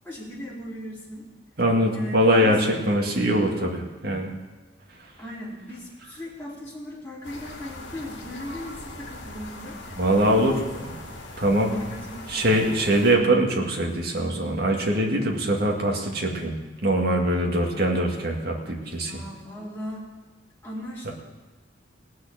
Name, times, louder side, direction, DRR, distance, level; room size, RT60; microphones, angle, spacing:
voice 1, 0.0-1.3 1.9-2.6 5.2-10.7 11.7-12.5 18.8-20.0 20.6-21.1, left 1 dB, 10° left, -9 dB, 4.2 m, -38 dB
voice 2, 1.6-4.3 10.0-10.9 11.4-11.8 12.3-16.5 16.8-19.2 21.0-21.1, right 1 dB, 55° right, 0 dB, 2.2 m, -22 dB
sound 1, 7.2-13.2, left 2 dB, 70° left, 2.4 m, -40 dB
17.5 x 6.5 x 8.7 m, 1.2 s
head